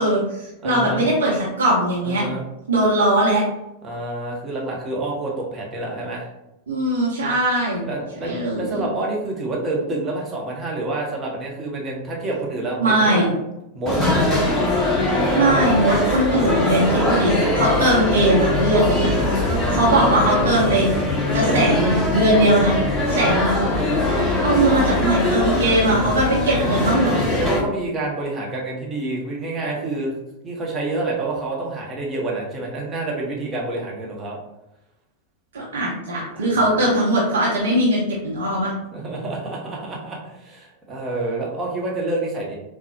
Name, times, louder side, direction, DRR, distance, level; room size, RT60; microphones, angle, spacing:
voice 1, 0.0-2.2 2.7-3.4 6.7-7.9 8.2-8.9 12.8-13.3 15.0-19.1 19.7-20.9 21.3-22.8 23.1-23.7 24.4-27.2 35.5-38.7, right 1 dB, 65° right, -5 dB, 0.7 m, -20 dB
voice 2, 0.6-1.1 2.0-2.4 3.8-6.3 7.9-13.3 13.7-14.0 16.7-17.2 18.8-19.2 21.4-21.8 22.3-22.7 23.1-23.5 25.8-26.5 27.3-30.1 30.4-34.4 36.3-36.5 36.7-36.8 38.9-42.6, right 2 dB, 20° right, -3 dB, 0.9 m, -28 dB
sound 1, 13.9-27.6, left 2 dB, ahead, 1.3 m, -21 dB
3.9 x 2.1 x 2.7 m, 0.90 s
figure-of-eight pair, 90°, 0 cm